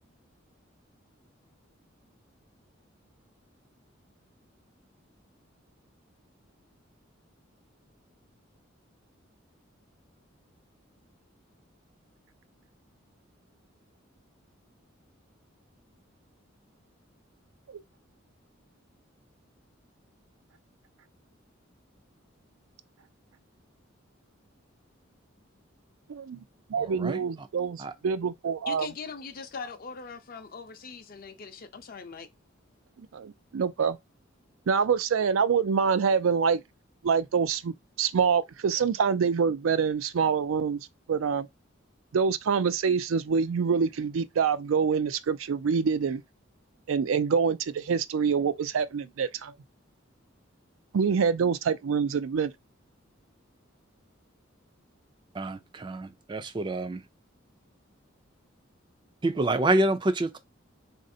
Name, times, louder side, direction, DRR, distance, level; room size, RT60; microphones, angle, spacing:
voice 1, 26.1-26.4 26.7-28.9 33.1-34.0 34.7-36.6 37.0-40.8 41.1-41.5 42.1-46.2 46.9-49.5 50.9-52.5, right 6 dB, 85° right, 0.4 m, -26 dB
voice 2, 26.8-27.2 27.8-27.9 55.3-57.0 59.2-60.4, right 2 dB, 25° right, 0.4 m, -27 dB
voice 3, 28.7-32.3, left 5 dB, 45° left, 0.6 m, -41 dB
4.0 x 2.6 x 2.6 m
head